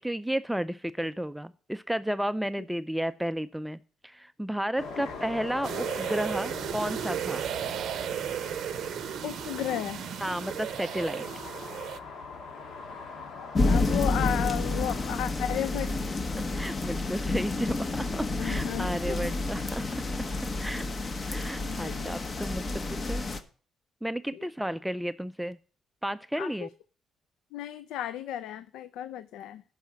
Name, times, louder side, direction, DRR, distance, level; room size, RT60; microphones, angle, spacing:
voice 1, 0.0-7.4 10.2-11.2 16.3-19.9 20.6-20.9 21.3-23.2 24.0-25.6 26.0-26.7, right 1 dB, 5° right, 12 dB, 0.4 m, -32 dB
sound 1, 4.8-15.1, left 4 dB, 75° left, 1.7 m, -42 dB
sound 2, 5.6-12.0, right 10 dB, 70° right, 0.6 m, -34 dB
voice 2, 9.2-10.0 13.6-15.9 18.4-19.3 21.6-22.1 24.3-24.5 26.4-26.7 27.5-29.6, left 11 dB, 90° left, 14 dB, 0.4 m, -34 dB
sound 3, 13.5-23.4, left 2 dB, 35° left, 1.1 m, -29 dB
11.0 x 4.8 x 7.3 m, 0.41 s
cardioid pair, 90°, 0 cm